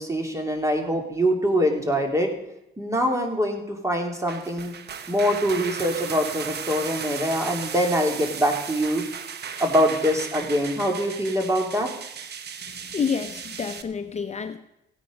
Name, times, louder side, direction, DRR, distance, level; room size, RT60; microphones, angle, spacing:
voice 1, 0.0-2.3 2.8-4.7 5.1-9.0 9.6-11.9, equal, 15° right, 2 dB, 3.0 m, -24 dB
sound 1, 4.1-13.8, right 7 dB, 55° right, 1.1 m, -36 dB
voice 2, 12.9-14.6, left 6 dB, 35° left, 7 dB, 0.8 m, -28 dB
16.5 x 9.2 x 5.3 m, 0.84 s
cardioid pair, 90°, 20 cm